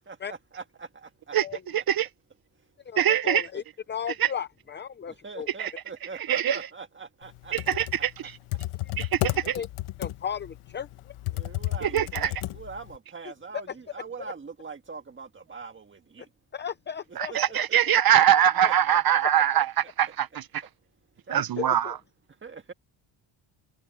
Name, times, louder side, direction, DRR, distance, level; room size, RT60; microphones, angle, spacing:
voice 1, 0.1-1.1 3.0-3.1 3.5-3.6 5.1-7.6 11.3-16.3 17.3-18.0 22.4-22.7, right 5 dB, 25° right, 1.7 m, -42 dB
voice 2, 1.7-2.1 3.0-3.4 4.2-4.3 5.6-5.7 6.3-6.6 7.5-8.4 9.0-9.6 11.8-12.3 17.2-20.6 21.3-22.0, right 10 dB, 45° right, 0.8 m, -23 dB
voice 3, 2.8-3.6 3.9-5.5 8.8-8.9 9.5-9.7 10.0-11.1 13.5-13.7 14.2-14.3 16.5-17.3 18.6-18.7 21.3-22.0, left 8 dB, 20° left, 0.6 m, -35 dB
Computer keyboard, 7.4-13.0, left 16 dB, 85° left, 1.3 m, -32 dB
cardioid pair, 155°, 50 cm